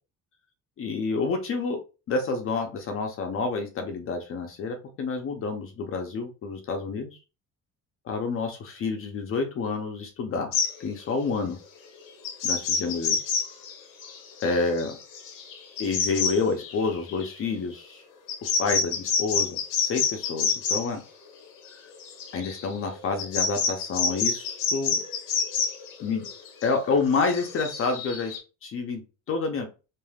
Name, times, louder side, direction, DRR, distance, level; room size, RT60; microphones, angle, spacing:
voice 1, 0.8-1.8 2.1-7.2 8.1-10.5 10.8-11.6 12.4-13.2 14.4-15.0 15.8-18.0 18.4-21.0 22.3-25.0 26.0-26.2 26.6-28.4 28.6-29.0 29.3-29.7, left 4 dB, 45° left, 4 dB, 0.6 m, -28 dB
sound 1, 10.5-10.7 12.2-17.3 18.3-20.9 22.0-28.4, left 5 dB, 80° left, 0.8 m, -28 dB
3.2 x 2.4 x 2.3 m, 0.31 s
cardioid pair, 135°, 32 cm